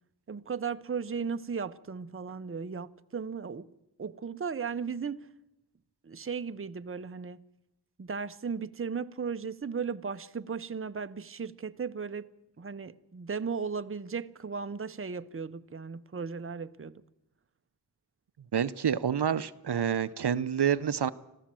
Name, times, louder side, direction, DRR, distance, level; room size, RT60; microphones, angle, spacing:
voice 1, 0.3-3.7 4.0-5.3 6.0-7.4 8.0-12.3 12.6-17.0, right 5 dB, 30° right, 0.7 m, -36 dB
voice 2, 18.5-21.1, right 8 dB, 70° right, 0.7 m, -28 dB
25.5 x 15.0 x 7.5 m
wide cardioid pair, 65°, 42 cm